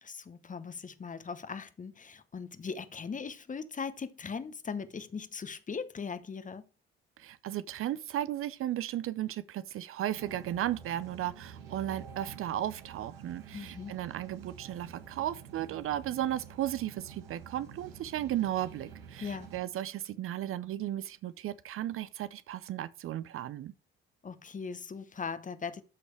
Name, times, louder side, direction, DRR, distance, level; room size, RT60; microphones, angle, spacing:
voice 1, 0.0-6.6 13.5-13.9 19.2-19.5 24.2-25.8, left 5 dB, 25° left, 1.0 m, -39 dB
voice 2, 7.2-23.7, right 12 dB, 45° right, 0.6 m, -35 dB
sound 1, 10.1-19.6, right 6 dB, 70° right, 1.7 m, -49 dB
13.0 x 6.2 x 3.3 m
figure-of-eight pair, 50°, 30 cm